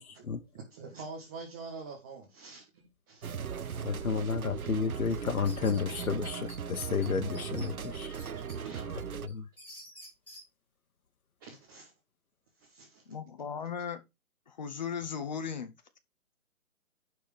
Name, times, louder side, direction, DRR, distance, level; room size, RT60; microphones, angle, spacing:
voice 1, 0.0-0.4 3.8-8.2 9.3-9.4, left 5 dB, 75° left, 1.4 m, -32 dB
voice 2, 0.5-4.0 8.2-8.8 9.3-9.4 11.4-11.9 12.6-13.0, right 4 dB, 15° right, 1.4 m, -47 dB
sound 1, 3.2-9.3, right 7 dB, 75° right, 1.0 m, -38 dB
sound 2, 5.1-6.6 7.0-7.1 7.3-8.6 9.0-10.4, equal, 5° left, 3.1 m, -50 dB
voice 3, 13.1-14.0 14.5-15.7, left 7 dB, 30° left, 1.2 m, -37 dB
11.5 x 4.7 x 5.0 m
hypercardioid pair, 170°, 43 cm